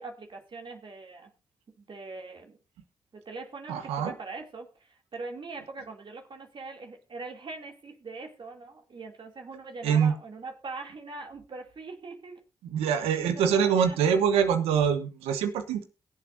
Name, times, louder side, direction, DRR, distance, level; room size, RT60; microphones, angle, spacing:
voice 1, 0.0-1.3 1.8-2.6 3.1-12.4 12.8-14.0, right 3 dB, 55° right, 2 dB, 2.9 m, -42 dB
voice 2, 3.7-4.1 9.8-10.1 12.6-15.8, right 7 dB, 90° right, 8 dB, 1.2 m, -24 dB
22.0 x 7.6 x 2.7 m, 0.30 s
supercardioid pair, 40°, 10 cm